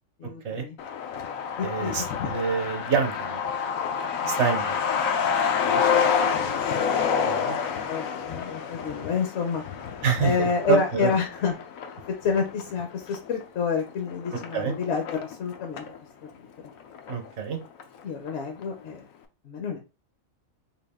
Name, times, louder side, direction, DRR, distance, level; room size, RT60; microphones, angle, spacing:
voice 1, 0.2-0.8 1.6-2.0 4.2-4.4 6.3-6.6 7.4-7.6 7.9-9.6 10.2-11.5 12.1-15.8 18.0-19.0 19.4-19.8, left 5 dB, 65° left, 3 dB, 0.9 m, -29 dB
Truck, 0.8-16.0 16.3-16.4 16.6-17.5 17.8-17.9 18.3-18.6, left 6 dB, 90° left, 1.1 m, -28 dB
voice 2, 1.6-3.5 4.3-4.7 5.6-5.8 7.2-7.6 10.0-11.1 14.5-14.7 17.1-17.6, right 6 dB, 60° right, 5 dB, 1.0 m, -27 dB
3.9 x 2.4 x 3.5 m, 0.29 s
omnidirectional pair, 1.4 m